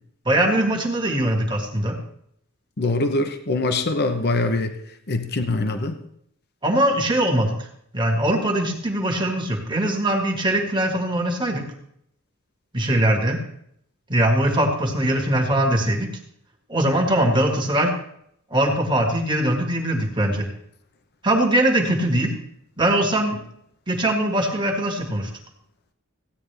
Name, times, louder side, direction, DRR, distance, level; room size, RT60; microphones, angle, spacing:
voice 1, 0.3-2.0 6.6-7.7 7.9-11.6 12.7-13.4 14.1-16.1 16.7-17.9 18.5-20.5 21.2-22.3 22.8-23.4 23.9-25.3, right 1 dB, 20° right, 2 dB, 1.8 m, -21 dB
voice 2, 2.8-4.7 5.1-6.0, left 2 dB, 50° left, 7 dB, 0.9 m, -23 dB
15.5 x 9.3 x 3.4 m, 0.71 s
head